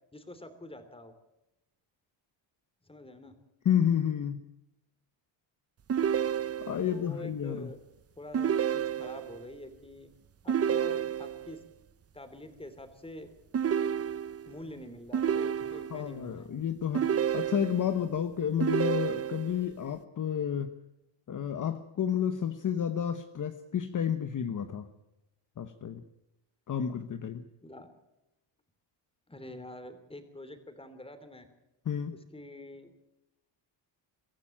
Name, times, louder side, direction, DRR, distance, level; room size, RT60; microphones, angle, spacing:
voice 1, 0.1-1.1 2.8-3.4 6.9-7.8 8.2-10.1 10.4-11.6 12.1-13.3 14.5-16.5 27.6-27.9 29.3-31.5 32.1-32.9, left 1 dB, 10° left, 9 dB, 3.1 m, -46 dB
voice 2, 3.6-4.4 6.6-7.7 15.9-20.7 21.3-24.9 25.6-26.0 26.7-27.5 31.9-32.1, left 8 dB, 40° left, 9 dB, 1.1 m, -31 dB
sound 1, 5.9-6.9 8.3-9.4 10.5-11.5 13.5-14.5 15.1-16.1 16.9-18.0 18.6-19.6, right 8 dB, 30° right, 0.7 m, -30 dB
24.0 x 15.0 x 8.9 m, 0.93 s
cardioid pair, 150°, 46 cm